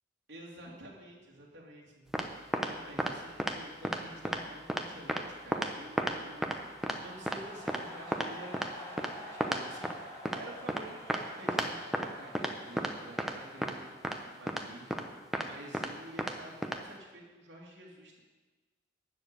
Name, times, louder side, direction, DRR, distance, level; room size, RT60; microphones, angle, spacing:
voice 1, 0.3-18.2, right 1 dB, 70° right, -3 dB, 2.7 m, -50 dB
sound 1, 2.1-2.2 2.5-2.7 3.0-3.1 3.4-3.5 3.8-4.0 4.3-4.4 4.7-4.8 5.1-5.2 5.5-5.7 6.0-6.1 6.4-6.6 6.8-7.0 7.3-7.4 7.7-7.8 8.1-8.3 8.5-8.7 9.0-9.1 9.4-9.6 9.8-9.9 10.3-10.4 10.7-10.8 11.1-11.2 11.5-11.7 11.9-12.1 12.4-12.5 12.8-12.9 13.2-13.3 13.6-13.7 14.0-14.2 14.5-14.6 14.9-15.0 15.3-15.5 15.7-15.9 16.2-16.3 16.6-16.8, right 1 dB, ahead, 0.7 m, -32 dB
sound 2, 3.6-15.3, equal, 15° left, 3.2 m, -50 dB
13.0 x 5.1 x 9.0 m, 1.3 s
head